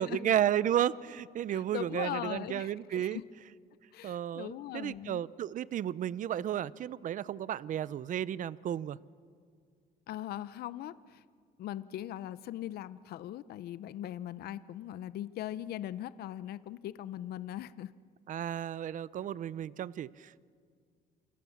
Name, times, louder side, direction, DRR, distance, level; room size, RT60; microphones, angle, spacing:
voice 1, 0.0-3.2 4.0-9.0 18.3-20.4, right 10 dB, 50° right, 0.6 m, -33 dB
voice 2, 1.5-3.2 3.9-5.2 10.1-11.2 11.6-17.9 18.4-18.5, left 12 dB, 70° left, 0.7 m, -40 dB
29.0 x 25.5 x 7.2 m
cardioid pair, 110°, 17 cm